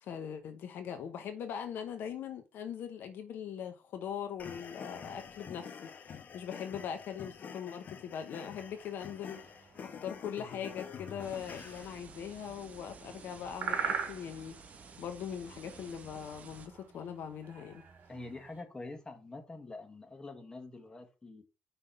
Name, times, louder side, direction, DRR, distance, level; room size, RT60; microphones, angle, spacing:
voice 1, 0.0-5.9 6.3-9.4 9.8-14.6 15.0-17.8, left 8 dB, 75° left, 0.9 m, -41 dB
sound 1, 4.4-12.0, left 6 dB, 55° left, 1.0 m, -47 dB
sound 2, 8.6-18.6, right 6 dB, 55° right, 2.0 m, -44 dB
sound 3, 11.2-16.7, right 5 dB, 40° right, 1.3 m, -53 dB
voice 2, 18.1-21.4, left 2 dB, 20° left, 1.7 m, -46 dB
5.7 x 3.5 x 5.6 m
cardioid pair, 85°, 4 cm